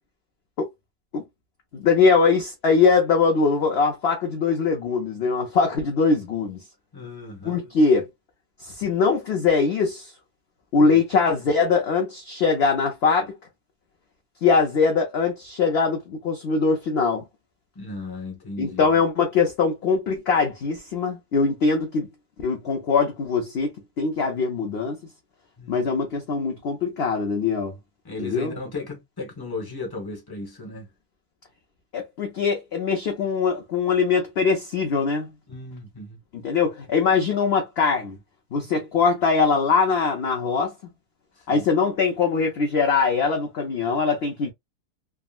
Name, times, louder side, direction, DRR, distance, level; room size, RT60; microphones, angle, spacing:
voice 1, 1.7-6.6 7.4-8.1 8.6-10.1 10.7-13.3 14.4-17.2 18.6-22.1 22.4-23.7 24.0-25.0 25.7-27.7 28.2-28.5 31.9-35.3 36.3-38.2 38.5-40.7 41.5-44.5, left 5 dB, 60° left, 0.7 m, -22 dB
voice 2, 6.9-7.7 10.8-11.0 17.7-18.9 25.6-25.9 28.0-30.9 35.5-36.2 41.5-41.7, left 3 dB, 15° left, 0.9 m, -36 dB
3.6 x 2.0 x 2.4 m
omnidirectional pair, 1.7 m